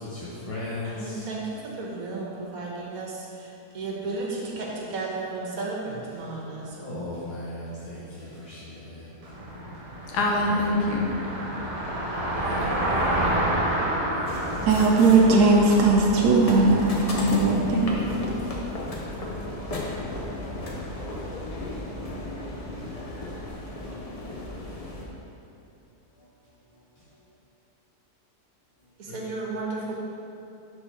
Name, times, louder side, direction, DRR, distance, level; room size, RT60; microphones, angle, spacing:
voice 1, 0.0-1.2 6.8-9.1 10.4-10.7 12.4-13.1 14.1-14.8 29.1-29.2, left 2 dB, 30° left, -9 dB, 0.7 m, -37 dB
voice 2, 0.8-7.0 29.0-29.9, right 3 dB, 65° right, -3 dB, 1.4 m, -34 dB
Car passing by, 9.2-21.5, right 1 dB, 50° right, 0.4 m, -30 dB
voice 3, 10.1-11.1 17.2-18.3, left 2 dB, 75° left, -2 dB, 1.4 m, -26 dB
sound 1, 14.3-25.0, left 1 dB, 60° left, 0.3 m, -35 dB
voice 4, 14.7-17.9, right 3 dB, 80° right, -2 dB, 1.2 m, -19 dB
4.7 x 4.3 x 5.6 m, 2.8 s
omnidirectional pair, 1.7 m